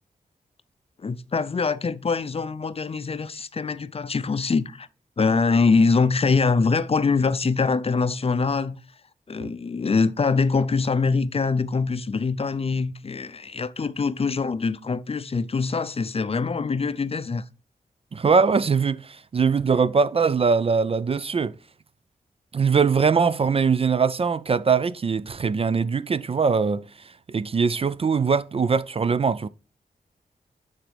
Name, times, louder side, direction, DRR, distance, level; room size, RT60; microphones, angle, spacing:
voice 1, 1.0-4.9 5.2-8.8 9.3-17.4, left 4 dB, 40° left, 0.5 m, -23 dB
voice 2, 18.1-21.5 22.5-26.9 27.3-29.5, right 5 dB, 35° right, 0.3 m, -22 dB
9.0 x 4.1 x 3.3 m
cardioid pair, 55°, 16 cm